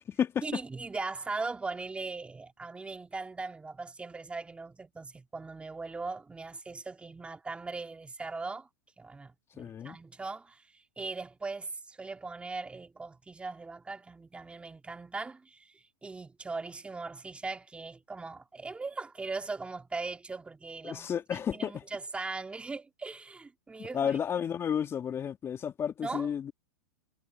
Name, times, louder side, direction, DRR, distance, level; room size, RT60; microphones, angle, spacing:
voice 1, 0.4-8.7 9.0-24.2 26.0-26.3, right 3 dB, 10° right, 2.4 m, -39 dB
voice 2, 9.6-10.0 20.8-21.8 23.8-26.5, left 8 dB, 25° left, 2.1 m, -32 dB
hypercardioid pair, 110°, 10 cm